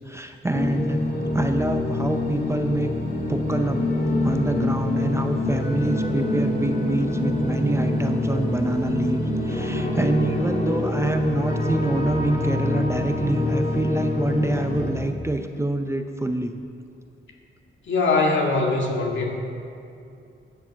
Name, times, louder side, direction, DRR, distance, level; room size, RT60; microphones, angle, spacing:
voice 1, 0.1-1.0 1.3-2.9 3.3-3.9 4.2-16.5, right 2 dB, 15° right, 6 dB, 0.6 m, -26 dB
sound 1, 0.5-14.9, left 1 dB, 40° left, 2.4 m, -25 dB
voice 2, 17.8-19.4, left 3 dB, 65° left, 0 dB, 1.9 m, -22 dB
11.0 x 7.1 x 7.4 m, 2.6 s
wide cardioid pair, 110°, 21 cm